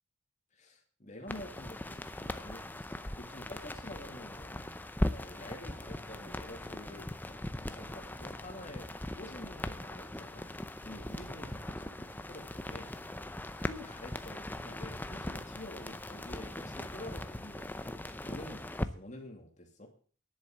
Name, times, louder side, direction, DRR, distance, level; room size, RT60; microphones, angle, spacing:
voice 1, 0.5-4.8 5.1-7.1 7.6-10.5 10.8-12.9 13.6-19.9, left 1 dB, 35° left, 3 dB, 2.5 m, -48 dB
sound 1, 1.3-18.9, left 1 dB, 10° left, 0.6 m, -40 dB
10.5 x 8.2 x 7.3 m, 0.43 s
head